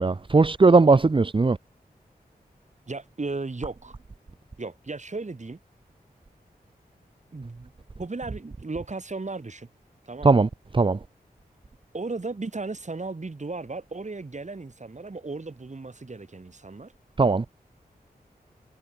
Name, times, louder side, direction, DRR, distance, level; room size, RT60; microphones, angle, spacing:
voice 1, 0.0-1.6 10.2-10.5 10.7-11.0 17.2-17.4, right 3 dB, 30° right, 0.7 m, -18 dB
voice 2, 2.9-4.0 4.6-5.6 7.3-7.7 8.0-9.7 10.1-10.4 11.9-16.9, right 3 dB, 45° right, 4.6 m, -35 dB
cardioid pair, 50°, 16 cm